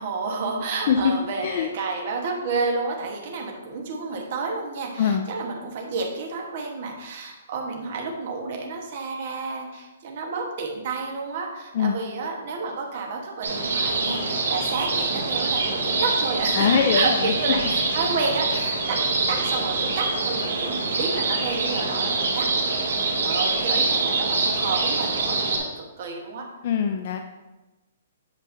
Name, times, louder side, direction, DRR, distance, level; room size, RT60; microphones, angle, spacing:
voice 1, 0.0-19.0 19.3-22.5 23.2-26.5, right 4 dB, 40° right, 1 dB, 1.1 m, -30 dB
sound 1, 13.4-25.6, right 3 dB, 85° right, 1.5 m, -25 dB
voice 2, 16.5-17.3 26.6-27.2, left 7 dB, 40° left, 5 dB, 0.4 m, -22 dB
8.2 x 6.1 x 2.7 m, 1.1 s
hypercardioid pair, 170°, 0 cm